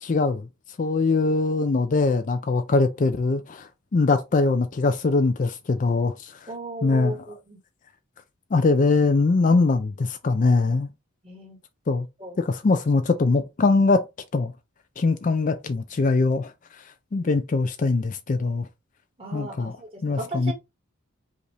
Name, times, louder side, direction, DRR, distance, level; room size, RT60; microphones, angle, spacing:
voice 1, 0.0-0.5 0.8-6.4 6.8-7.1 8.5-10.9 11.9-12.1 12.4-14.0 14.3-14.5 15.0-16.5 17.1-18.7 19.3-19.8 20.0-20.5, left 3 dB, 35° left, 0.4 m, -22 dB
voice 2, 6.5-7.6 11.2-11.6 12.2-12.4 17.2-17.3 19.2-20.5, right 1 dB, 25° right, 1.7 m, -36 dB
5.1 x 2.5 x 3.3 m
head